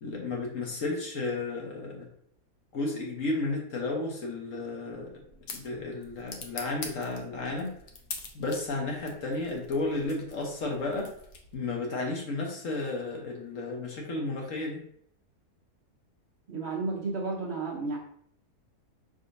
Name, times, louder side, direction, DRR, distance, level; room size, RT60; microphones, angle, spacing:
voice 1, 0.0-2.1 2.7-5.1 5.5-7.7 8.3-11.1 11.5-14.8, left 2 dB, 55° left, 0 dB, 1.2 m, -33 dB
sound 1, 4.8-11.8, left 4 dB, 80° left, 1.3 m, -45 dB
voice 2, 16.5-18.0, right 3 dB, 50° right, -3 dB, 1.0 m, -32 dB
5.4 x 3.7 x 2.6 m, 0.66 s
omnidirectional pair, 1.7 m